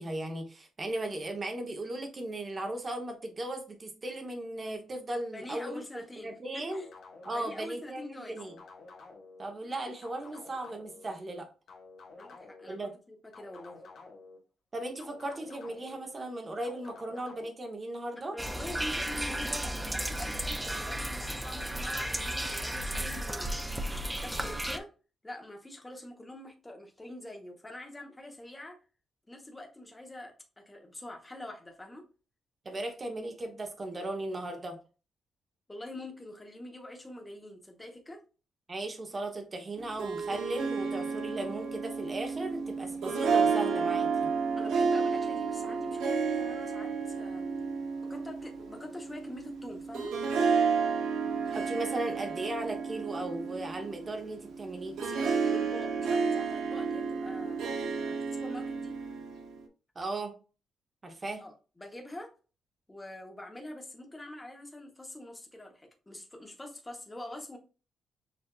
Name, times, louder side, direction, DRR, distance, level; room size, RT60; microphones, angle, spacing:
voice 1, 0.0-6.8 7.2-8.6 9.4-11.5 12.7-12.9 14.7-18.4 32.6-34.8 38.7-44.3 51.5-55.0 59.9-60.3 61.0-61.4, right 1 dB, 25° right, 4 dB, 0.8 m, -37 dB
voice 2, 5.3-6.9 7.2-8.4 12.2-13.8 18.2-23.5 24.2-24.9 25.2-28.8 29.3-32.0 35.7-38.2 44.5-47.4 48.1-50.2 55.0-58.9 61.4-62.3 62.9-67.6, left 1 dB, 10° left, 2 dB, 0.9 m, -45 dB
sound 1, 6.7-7.8 8.4-9.4 10.0-11.1 11.7-12.7 13.3-14.4 15.0-16.0 16.6-17.5, left 3 dB, 55° left, 1.1 m, -51 dB
sound 2, 18.4-24.8, right 1 dB, 5° right, 0.3 m, -34 dB
Harp, 39.8-59.6, right 5 dB, 70° right, 0.8 m, -31 dB
6.6 x 2.5 x 2.3 m, 0.34 s
cardioid pair, 170°, 0 cm